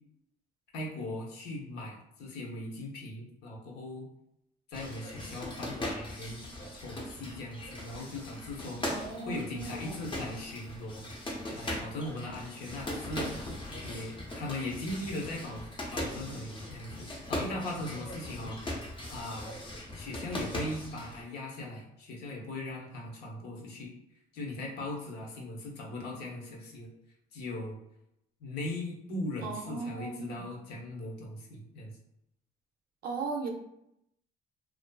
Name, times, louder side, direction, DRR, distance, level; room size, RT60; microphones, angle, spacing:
voice 1, 0.7-4.1 4.7-6.4 6.7-8.8 9.2-11.0 11.5-18.6 19.1-19.6 19.9-23.9 24.3-26.9 27.3-27.8 28.4-32.0, left 1 dB, 70° left, -1 dB, 0.7 m, -39 dB
sound 1, 4.7-21.3, left 1 dB, 30° left, 0.6 m, -40 dB
voice 2, 8.9-10.0 29.4-30.5 33.0-33.5, right 4 dB, 65° right, 2 dB, 0.5 m, -37 dB
2.4 x 2.4 x 2.2 m, 0.81 s
cardioid pair, 110°, 17 cm